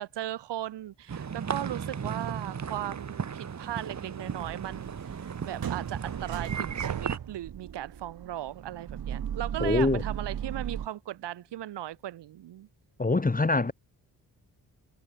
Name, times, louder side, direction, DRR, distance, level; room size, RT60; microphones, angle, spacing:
voice 1, 0.0-12.7 13.6-13.7, right 13 dB, 85° right, 3.3 m, -37 dB
sound 1, 1.1-7.2, right 7 dB, 45° right, 1.3 m, -35 dB
sound 2, 4.2-10.9, right 9 dB, 60° right, 1.4 m, -37 dB
voice 2, 9.6-10.0 13.0-13.7, left 3 dB, 20° left, 1.2 m, -24 dB
supercardioid pair, 45°, 41 cm